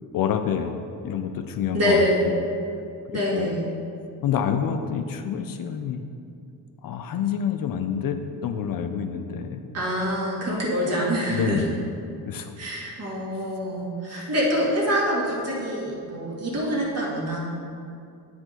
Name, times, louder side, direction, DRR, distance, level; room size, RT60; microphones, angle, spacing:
voice 1, 0.1-0.8 1.0-2.4 3.1-3.5 4.2-6.0 6.8-9.6 11.3-11.8 12.3-12.5 14.1-14.2, left 8 dB, 60° left, 7 dB, 0.5 m, -27 dB
voice 2, 1.7-2.3 3.1-3.6 9.7-11.6 12.6-17.4, equal, 40° right, -4 dB, 1.7 m, -25 dB
9.5 x 4.9 x 3.8 m, 2.5 s
cardioid pair, 150°, 40 cm